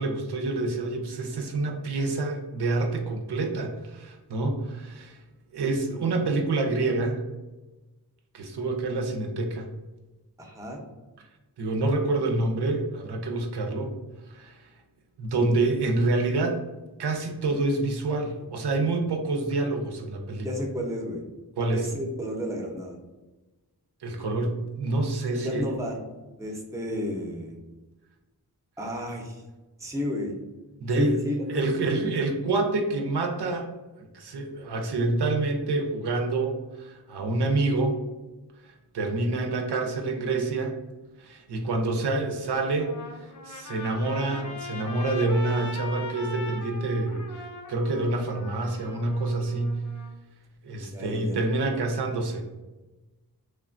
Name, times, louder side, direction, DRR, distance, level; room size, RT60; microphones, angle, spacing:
voice 1, 0.0-5.2 5.5-7.2 8.3-9.7 11.6-13.9 14.3-14.6 15.2-16.6 17.0-20.5 21.6-21.8 24.0-25.7 30.8-31.2 31.5-33.7 34.1-37.9 38.7-40.7 41.2-42.9 43.2-47.2 47.7-49.8 50.6-52.4, right 2 dB, 80° right, 2 dB, 0.5 m, -27 dB
voice 2, 10.4-10.8 20.4-21.3 21.7-23.0 25.3-26.0 26.4-27.6 28.8-29.4 29.8-30.4 30.9-31.8 39.2-39.4 50.9-51.4, left 1 dB, 10° right, 0 dB, 0.5 m, -32 dB
Trumpet, 42.7-50.1, left 3 dB, 50° left, 0.5 m, -40 dB
3.1 x 2.2 x 2.4 m, 1.1 s
wide cardioid pair, 70°, 40 cm